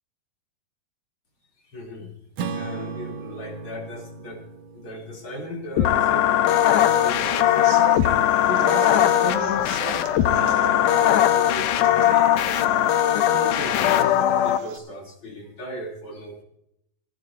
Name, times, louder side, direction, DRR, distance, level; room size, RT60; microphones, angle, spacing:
voice 1, 1.6-2.1 2.5-4.4 4.7-7.9 8.4-9.6 9.9-16.4, equal, 35° left, -1 dB, 3.8 m, -37 dB
Acoustic guitar / Strum, 2.4-7.1, right 5 dB, 70° right, 1.2 m, -37 dB
sound 1, 5.8-14.6, left 11 dB, 75° left, 2.1 m, -19 dB
sound 2, 6.8-14.8, right 9 dB, 90° right, 2.8 m, -38 dB
27.0 x 10.0 x 2.7 m, 0.77 s
omnidirectional pair, 4.1 m